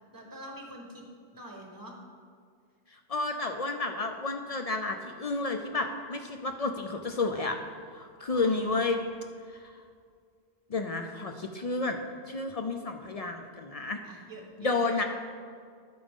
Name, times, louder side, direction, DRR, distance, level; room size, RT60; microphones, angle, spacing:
voice 1, 0.1-1.0 1.3-2.0 8.2-8.8 14.0-15.0, right 1 dB, 20° right, 0 dB, 1.4 m, -45 dB
voice 2, 3.1-7.6 7.9-9.0 10.7-12.0 12.3-14.0 14.6-15.0, left 3 dB, 50° left, 5 dB, 0.4 m, -31 dB
11.0 x 8.7 x 3.6 m, 2.1 s
omnidirectional pair, 1.1 m